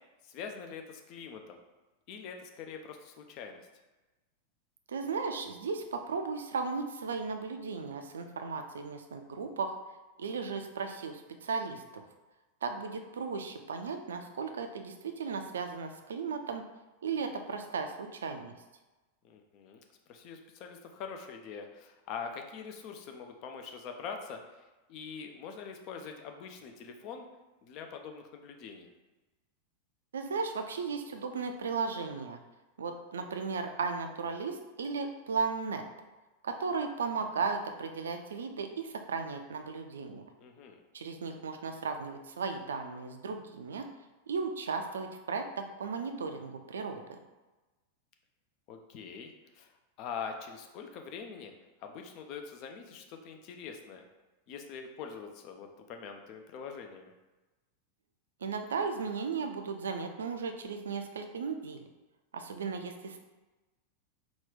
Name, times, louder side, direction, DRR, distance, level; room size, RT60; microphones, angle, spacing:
voice 1, 0.2-1.6 2.1-3.7 19.2-19.8 20.1-24.6 24.9-27.3 27.6-28.9 40.4-40.8 48.7-49.7 50.0-51.5 51.8-54.0 54.5-57.1, left 6 dB, 40° left, 4 dB, 0.5 m, -44 dB
voice 2, 4.9-9.7 10.2-12.0 12.6-16.6 17.0-18.5 30.1-32.4 32.8-35.8 36.4-40.2 40.9-43.8 44.3-47.2 58.4-61.8 62.3-63.2, right 5 dB, 65° right, 6 dB, 0.4 m, -35 dB
4.0 x 2.3 x 3.7 m, 1.1 s
figure-of-eight pair, 90°, 0 cm